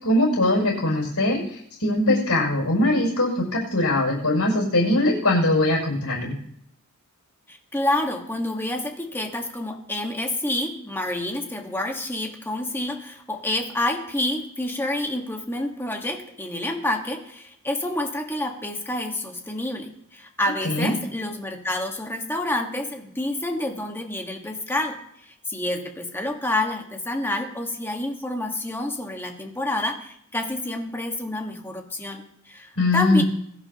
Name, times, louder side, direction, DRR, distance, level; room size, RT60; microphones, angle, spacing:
voice 1, 0.0-6.4 20.6-20.9 32.8-33.2, left 1 dB, 85° left, -2 dB, 5.9 m, -21 dB
voice 2, 7.5-25.0 25.2-33.2, left 1 dB, 10° left, 3 dB, 1.5 m, -28 dB
21.5 x 11.0 x 2.9 m, 0.70 s
head